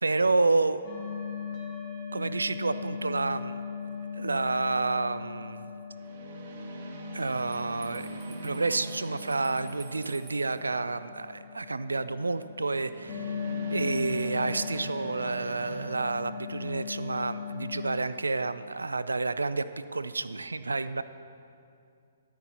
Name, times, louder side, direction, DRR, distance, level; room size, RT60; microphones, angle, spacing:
voice 1, 0.0-0.8 2.1-3.6 4.1-5.7 7.1-13.4 13.7-19.6 19.9-21.0, right 3 dB, 85° right, 13 dB, 0.3 m, -29 dB
sound 1, 0.8-18.0, left 7 dB, 30° left, 1.8 m, -39 dB
sound 2, 4.0-4.3 5.9-11.0 12.8-15.9, right 4 dB, 50° right, 1.1 m, -43 dB
Bell, 7.5-10.6, right 4 dB, 15° right, 1.5 m, -54 dB
13.5 x 8.2 x 2.9 m, 2.5 s
figure-of-eight pair, 130°, 0 cm